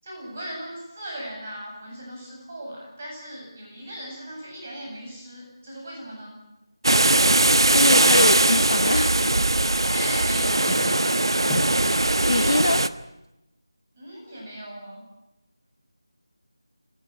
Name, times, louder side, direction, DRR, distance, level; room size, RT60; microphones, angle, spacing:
voice 1, 0.0-6.4 9.9-11.3 13.9-15.0, right 1 dB, 25° right, -1 dB, 8.0 m, -38 dB
sound 1, 6.8-12.9, right 2 dB, 70° right, 1.2 m, -20 dB
Drawer open or close, 7.2-8.5 9.7-9.9 10.3-11.8, left 2 dB, 5° left, 1.4 m, -35 dB
voice 2, 7.7-9.1 12.3-12.8, left 2 dB, 45° left, 13 dB, 0.9 m, -23 dB
25.5 x 17.0 x 9.6 m, 0.92 s
figure-of-eight pair, 175°, 2 cm